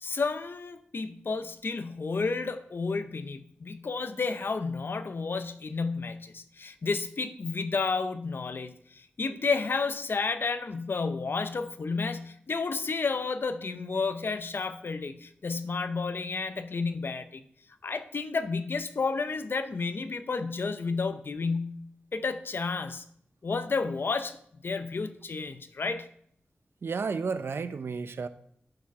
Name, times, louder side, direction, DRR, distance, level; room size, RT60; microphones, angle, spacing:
voice 1, 0.0-17.4 17.8-23.0 23.4-24.4 24.6-26.1, left 4 dB, 65° left, 0.7 m, -31 dB
voice 2, 26.8-28.3, right 5 dB, 90° right, 0.6 m, -32 dB
12.0 x 5.1 x 4.6 m
wide cardioid pair, 90°, 4 cm